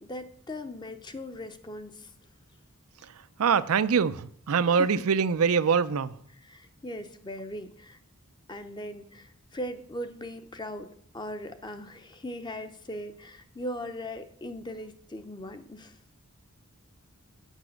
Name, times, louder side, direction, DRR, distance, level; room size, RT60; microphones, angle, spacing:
voice 1, 0.0-2.1 4.7-4.9 6.4-8.0 8.5-10.9 11.1-16.0, left 1 dB, 20° left, 0.7 m, -39 dB
voice 2, 3.4-6.2, right 6 dB, 80° right, 0.5 m, -24 dB
8.2 x 6.0 x 7.7 m
head